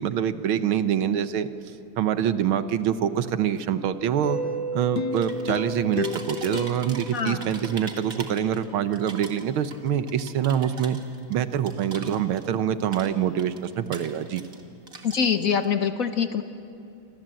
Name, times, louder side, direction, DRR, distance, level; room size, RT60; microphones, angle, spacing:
voice 1, 0.0-1.5 2.0-4.4 4.7-11.0 11.3-14.4, right 9 dB, 90° right, 11 dB, 1.8 m, -25 dB
Mallet percussion, 4.2-8.0, right 4 dB, 60° right, 4.7 m, -34 dB
sound 1, 5.0-8.3 8.7-8.8, left 8 dB, 70° left, 1.6 m, -35 dB
sound 2, 5.1-5.6 5.9-8.6 8.9-12.6 12.8-14.6 14.9-15.7, right 4 dB, 45° right, 2.2 m, -42 dB
voice 2, 15.0-16.4, left 7 dB, 50° left, 8 dB, 1.2 m, -24 dB
27.5 x 25.5 x 7.8 m, 2.6 s
omnidirectional pair, 2.2 m